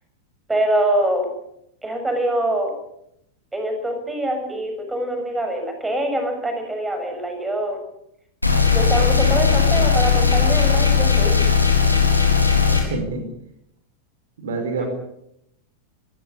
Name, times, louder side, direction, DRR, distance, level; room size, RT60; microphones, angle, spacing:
voice 1, 0.5-1.3 1.8-2.7 3.5-7.8 8.7-11.5 14.8-14.9, right 1 dB, 10° right, 5 dB, 7.0 m, -24 dB
sound 1, 8.4-12.8, left 6 dB, 85° left, 4.7 m, -17 dB
voice 2, 12.7-13.3 14.4-14.9, right 3 dB, 60° right, 7 dB, 4.7 m, -27 dB
26.5 x 16.0 x 8.3 m, 0.77 s
figure-of-eight pair, 90°, 0 cm